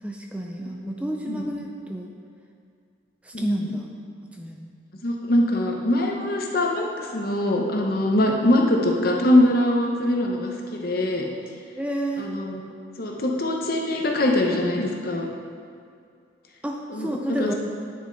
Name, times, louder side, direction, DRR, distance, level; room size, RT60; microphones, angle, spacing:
voice 1, 0.0-2.1 3.2-3.8 4.4-4.8 11.8-12.3 16.6-17.5, right 1 dB, 5° right, 1 dB, 0.4 m, -30 dB
voice 2, 1.3-1.6 3.3-3.8 5.0-11.2 12.2-12.6 13.0-15.3 16.9-17.5, left 1 dB, 50° left, 0 dB, 0.9 m, -23 dB
9.8 x 6.5 x 4.0 m, 2.3 s
head